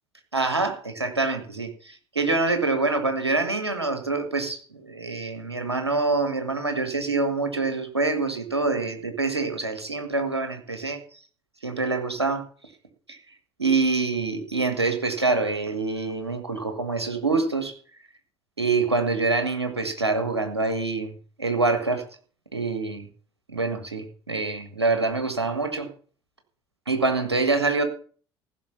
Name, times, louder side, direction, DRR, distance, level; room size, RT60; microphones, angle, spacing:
voice 1, 0.3-11.0 11.6-12.4 13.1-13.2 13.6-17.7 18.6-21.1 21.4-22.1 22.5-23.1 23.5-25.9 26.9-27.8, right 3 dB, 85° right, 7 dB, 1.6 m, -25 dB
15.0 x 6.4 x 6.8 m, 0.42 s
figure-of-eight pair, 60°, 13 cm